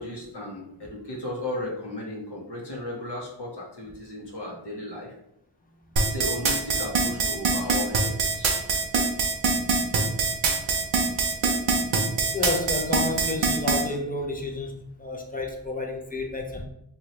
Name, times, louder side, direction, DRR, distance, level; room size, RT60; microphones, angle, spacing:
voice 1, 0.0-5.1 6.0-8.5, left 1 dB, 60° left, -1 dB, 0.8 m, -35 dB
sound 1, 6.0-13.8, right 4 dB, 80° right, 0.6 m, -23 dB
voice 2, 12.2-16.7, left 2 dB, 20° left, 1 dB, 0.5 m, -30 dB
2.7 x 2.3 x 3.0 m, 0.75 s
wide cardioid pair, 50°, 46 cm